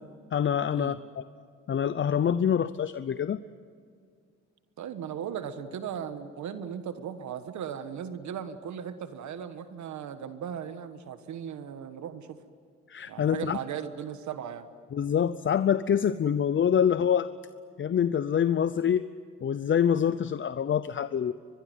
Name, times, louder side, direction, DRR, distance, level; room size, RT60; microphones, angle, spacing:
voice 1, 0.3-1.2 1.7-3.4 12.9-13.6 14.9-17.3 17.8-19.1 19.4-21.3, left 8 dB, 40° left, 14 dB, 0.7 m, -26 dB
voice 2, 4.8-12.4 13.1-14.7 16.1-16.2, right 8 dB, 70° right, 10 dB, 1.4 m, -37 dB
24.0 x 22.0 x 9.3 m, 2.1 s
cardioid pair, 90°, 30 cm